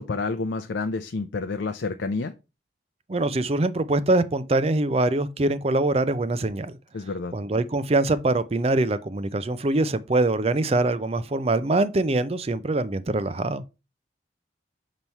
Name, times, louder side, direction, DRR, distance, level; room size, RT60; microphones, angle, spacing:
voice 1, 0.0-2.3 6.9-7.4, left 3 dB, 80° left, 0.6 m, -29 dB
voice 2, 3.1-6.8 7.3-13.6, right 2 dB, 35° right, 0.5 m, -23 dB
7.0 x 3.1 x 5.4 m
head